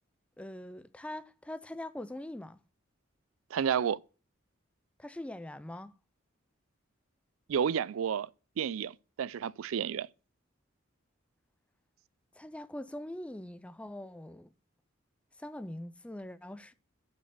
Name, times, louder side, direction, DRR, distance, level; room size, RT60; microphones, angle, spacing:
voice 1, 0.4-2.6 5.0-5.9 12.3-14.5 15.4-16.7, left 1 dB, 5° left, 0.3 m, -42 dB
voice 2, 3.5-4.0 7.5-8.3 8.6-10.1, right 8 dB, 85° right, 0.4 m, -31 dB
6.5 x 6.0 x 5.8 m
head